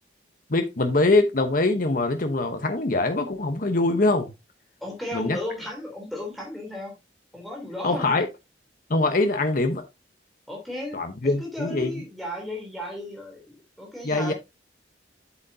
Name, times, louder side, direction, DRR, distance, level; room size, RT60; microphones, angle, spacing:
voice 1, 0.5-4.3 5.1-5.4 7.8-8.3 8.9-9.9 10.9-12.0 14.0-14.3, left 2 dB, 50° left, 1.0 m, -23 dB
voice 2, 4.8-6.9 7.3-8.2 10.5-11.0 11.2-14.3, left 1 dB, ahead, 3.4 m, -35 dB
8.2 x 7.9 x 2.8 m
head